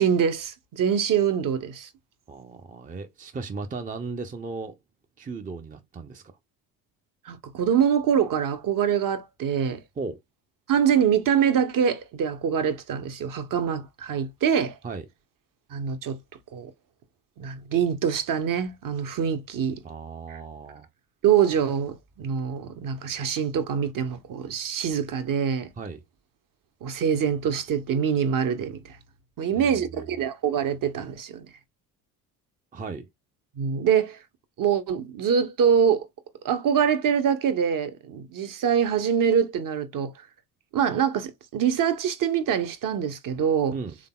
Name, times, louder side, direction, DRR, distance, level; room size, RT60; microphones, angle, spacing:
voice 1, 0.0-1.9 7.3-9.8 10.7-14.7 15.7-16.2 16.5-16.7 17.4-19.8 20.3-20.4 21.2-25.7 26.8-28.9 29.4-31.5 33.6-34.2 34.6-36.1 36.4-40.1 40.7-43.8, right 8 dB, 45° right, 1.0 m, -24 dB
voice 2, 2.3-4.8 5.2-6.2 10.0-10.2 14.8-15.0 19.8-20.9 25.8-26.0 29.6-30.0 32.7-33.1 43.7-44.0, right 4 dB, 20° right, 0.6 m, -36 dB
3.8 x 3.5 x 2.2 m
hypercardioid pair, 70°, 47 cm